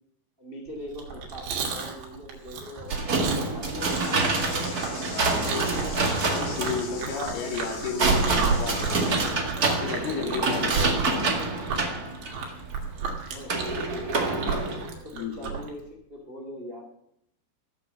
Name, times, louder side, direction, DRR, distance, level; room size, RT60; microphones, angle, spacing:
voice 1, 0.4-4.4 11.3-11.5 13.2-14.2 14.9-16.9, left 1 dB, 25° right, 1 dB, 1.2 m, -42 dB
Chewing mastication, 0.9-15.7, right 5 dB, 75° right, 4.8 m, -32 dB
sound 1, 2.9-14.8, right 3 dB, 50° right, 1.1 m, -27 dB
sound 2, 3.8-9.3, left 6 dB, 80° left, 4.7 m, -42 dB
voice 2, 5.0-9.2 9.7-11.3 15.1-15.3, left 5 dB, 65° left, 2 dB, 4.4 m, -33 dB
16.0 x 8.1 x 7.4 m, 0.75 s
omnidirectional pair, 5.0 m